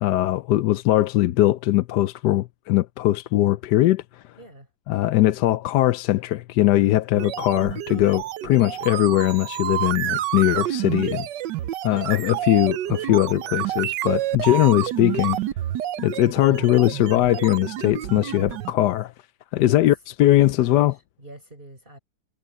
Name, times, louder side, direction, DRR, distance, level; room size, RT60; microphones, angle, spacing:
voice 1, 0.0-4.2 4.9-11.3 11.8-15.4 16.0-19.1 19.5-21.0, left 15 dB, 75° left, 1.2 m, -20 dB
voice 2, 4.4-4.7 19.5-19.9 20.3-22.0, right 1 dB, 30° right, 5.2 m, -44 dB
sound 1, 7.1-18.7, right 13 dB, 80° right, 1.3 m, -29 dB
omnidirectional pair, 1.9 m